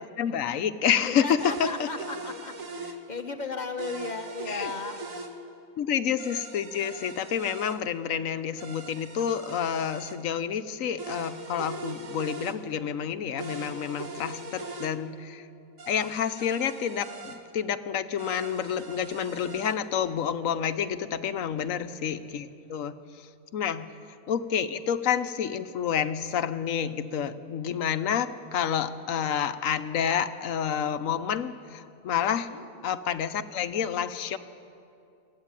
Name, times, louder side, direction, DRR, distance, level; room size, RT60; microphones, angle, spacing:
voice 1, 0.0-1.9 4.5-4.7 5.8-15.4 15.9-22.9 23.5-23.9 24.3-32.5 32.8-34.4, left 8 dB, 80° left, 11 dB, 1.2 m, -29 dB
voice 2, 1.0-5.0 21.3-21.8 22.6-22.8 32.5-32.7, left 4 dB, 35° left, 6 dB, 1.3 m, -36 dB
sound 1, 1.4-3.0 3.8-5.3 6.2-7.8 8.6-10.2 11.0-12.6 13.4-14.9 15.8-17.4 18.2-19.8, right 3 dB, 80° right, 2.0 m, -41 dB
23.0 x 14.5 x 8.9 m, 2.6 s
omnidirectional pair, 1.4 m